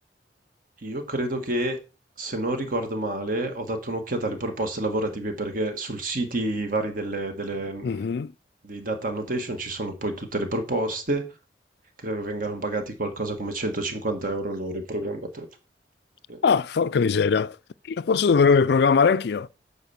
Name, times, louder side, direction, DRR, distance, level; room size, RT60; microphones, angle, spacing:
voice 1, 0.8-1.8 2.2-7.9 8.6-11.3 12.0-15.4 16.3-16.4, right 2 dB, 50° right, 1.8 m, -29 dB
voice 2, 7.8-8.3 16.4-17.6 17.9-19.5, left 5 dB, 65° left, 0.4 m, -20 dB
9.1 x 4.0 x 7.1 m
head